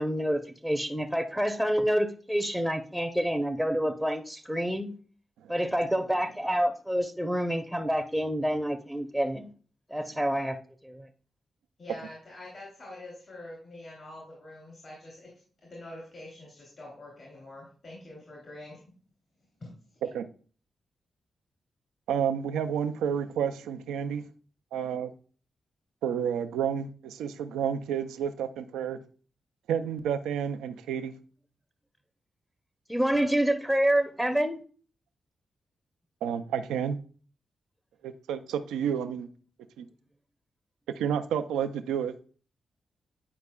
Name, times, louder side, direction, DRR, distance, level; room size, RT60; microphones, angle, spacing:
voice 1, 0.0-4.9 5.5-9.5 9.9-10.6 10.8-11.1 32.9-34.6, equal, ahead, 0.7 m, -27 dB
voice 2, 11.8-15.3 15.6-18.8 19.6-20.1, left 1 dB, 55° left, 2.9 m, -45 dB
voice 3, 22.1-24.2 24.7-25.1 26.0-29.0 29.7-31.1 36.2-37.0 38.0-39.3 39.8-39.9 41.0-42.1, right 8 dB, 85° right, 0.4 m, -30 dB
9.5 x 4.8 x 2.2 m
supercardioid pair, 40°, 0 cm